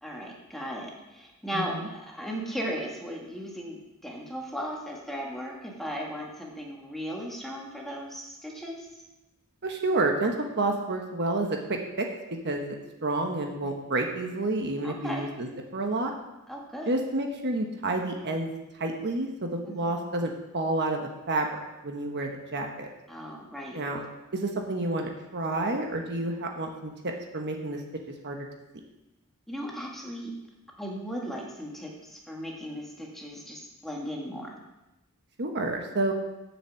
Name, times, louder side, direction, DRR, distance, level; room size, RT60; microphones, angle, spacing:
voice 1, 0.0-8.9 14.8-15.3 16.5-16.9 19.7-20.0 23.1-23.8 29.5-30.3 30.8-34.6, equal, ahead, -2 dB, 1.7 m, -37 dB
voice 2, 1.5-1.9 9.6-12.1 12.4-12.7 13.0-15.5 15.7-16.1 16.9-18.5 18.8-22.9 23.7-24.0 24.3-27.8 28.2-28.5 35.4-36.1, right 2 dB, 50° right, 2 dB, 1.2 m, -29 dB
7.2 x 7.0 x 7.5 m, 0.97 s
head